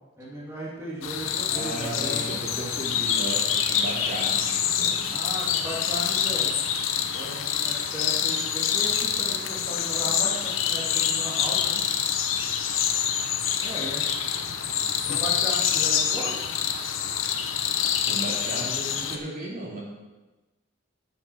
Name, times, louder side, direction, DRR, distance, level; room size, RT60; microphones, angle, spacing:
voice 1, 0.2-2.3 5.1-6.6 6.9-11.8 13.6-14.0 15.1-16.3, right 1 dB, 15° right, -7 dB, 2.2 m, -36 dB
sound 1, 1.0-19.2, left 8 dB, 90° left, 0.9 m, -26 dB
voice 2, 1.5-5.1 18.1-19.8, right 1 dB, 45° right, -4 dB, 2.8 m, -35 dB
9.5 x 7.2 x 6.1 m, 1.1 s
head